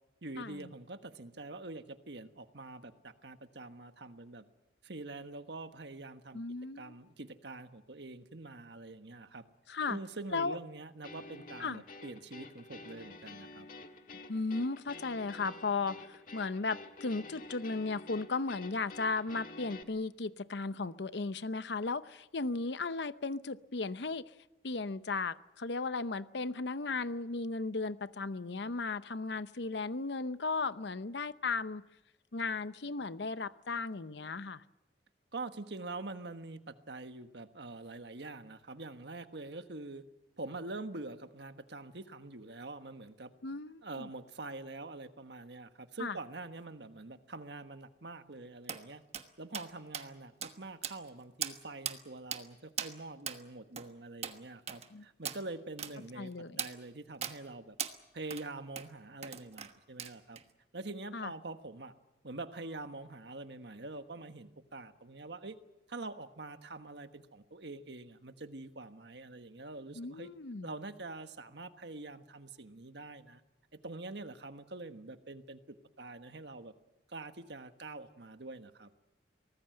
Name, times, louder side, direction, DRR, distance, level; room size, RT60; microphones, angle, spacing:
voice 1, 0.2-4.4 4.8-6.4 6.7-9.4 9.9-13.7 35.3-40.0 40.4-43.3 43.8-49.0 49.4-56.3 56.6-57.8 58.1-60.4 60.7-61.9 62.2-65.6 65.9-70.3 70.6-73.4 73.7-76.7 77.1-78.9, right 2 dB, 70° right, 9 dB, 1.3 m, -45 dB
voice 2, 6.3-6.9 9.7-10.0 10.3-10.5 11.6-11.8 14.3-24.3 24.6-31.8 32.3-34.6 43.4-44.1 46.0-46.2 54.9-55.0 56.2-56.6 61.1-61.3 70.0-70.7, left 3 dB, 70° left, 14 dB, 0.8 m, -36 dB
sound 1, 11.0-19.8, left 3 dB, 50° left, 1.6 m, -50 dB
sound 2, 48.7-48.8 49.1-49.3 49.5-49.7 49.9-50.1 50.4-50.5 50.8-51.1 51.4-51.6 51.9-52.0 52.3-52.4 52.8-52.9 53.3-53.4 53.8-53.9 54.2-54.4 54.7-54.9 55.3-55.4 55.8-55.9 56.6-56.7 57.2-57.4 57.8-57.9 58.3-58.5 58.8-58.9 59.2-59.7 60.0-60.4, right 8 dB, 35° right, 1.3 m, -38 dB
24.0 x 19.0 x 7.8 m, 0.95 s
head